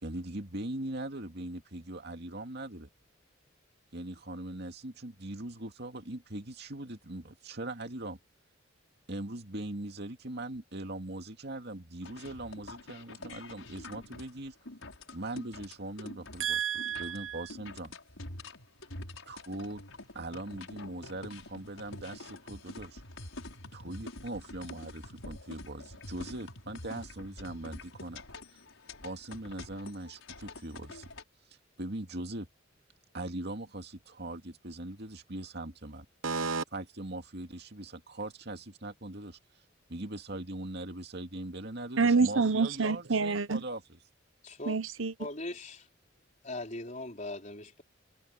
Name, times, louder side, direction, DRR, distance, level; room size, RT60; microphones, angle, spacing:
voice 1, 0.0-2.9 3.9-8.2 9.1-14.6 15.1-16.6 17.0-17.9 19.3-19.8 20.1-23.0 23.7-28.2 28.5-28.6 29.0-31.1 31.8-32.5 33.1-36.1 36.7-39.4 39.9-43.8, right 1 dB, 55° right, 2.4 m, -40 dB
sound 1, 12.0-31.2, left 2 dB, 90° left, 6.0 m, -47 dB
voice 2, 16.4-17.4 36.2-36.6 42.0-43.6 44.7-45.1, right 4 dB, 85° right, 1.1 m, -28 dB
voice 3, 44.4-44.8 45.2-45.9 46.4-47.8, left 2 dB, 40° left, 4.3 m, -40 dB
head